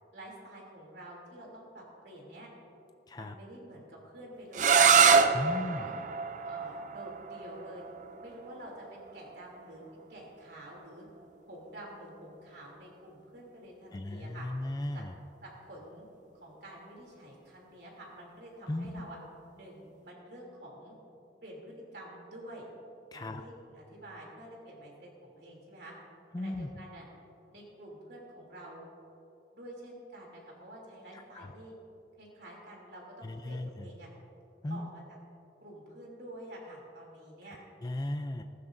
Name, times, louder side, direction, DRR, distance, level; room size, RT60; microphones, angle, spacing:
voice 1, 0.1-2.5 3.1-5.0 5.3-5.9 6.4-7.8 8.2-9.8 10.1-11.1 11.5-14.5 14.9-15.0 15.4-16.1 16.3-19.2 19.5-20.9 21.4-22.7 23.1-25.9 26.4-27.0 27.5-28.8 29.5-31.7 32.2-34.1 34.7-35.2 35.6-37.6, right 1 dB, 65° right, -2 dB, 3.0 m, -48 dB
sound 1, 4.5-10.3, right 6 dB, 40° right, 0.4 m, -26 dB
voice 2, 5.3-5.9 13.9-15.1 18.7-19.1 23.1-23.4 26.3-26.7 31.1-31.5 33.2-33.9 34.6-34.9 37.8-38.4, left 1 dB, 20° left, 6 dB, 0.4 m, -36 dB
19.5 x 14.5 x 2.6 m, 2.8 s
head